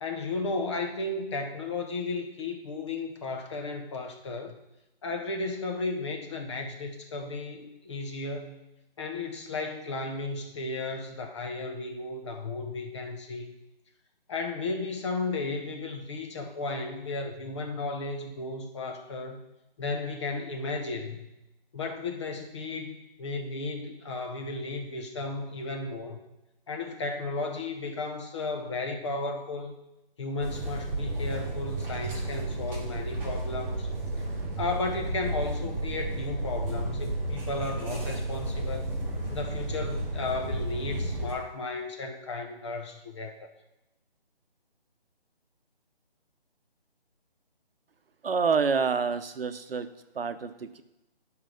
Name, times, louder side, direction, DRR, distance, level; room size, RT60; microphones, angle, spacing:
voice 1, 0.0-4.6 5.0-8.6 9.0-13.5 14.3-19.4 19.8-21.3 21.7-26.2 26.7-29.7 30.2-33.9 34.6-38.9 39.3-43.5, left 3 dB, 30° left, 4 dB, 1.0 m, -34 dB
sound 1, 30.4-41.3, right 2 dB, 5° right, 2.2 m, -32 dB
voice 2, 48.2-49.9 50.1-50.8, right 5 dB, 70° right, 11 dB, 0.8 m, -27 dB
10.0 x 4.8 x 5.5 m, 0.93 s
figure-of-eight pair, 160°, 31 cm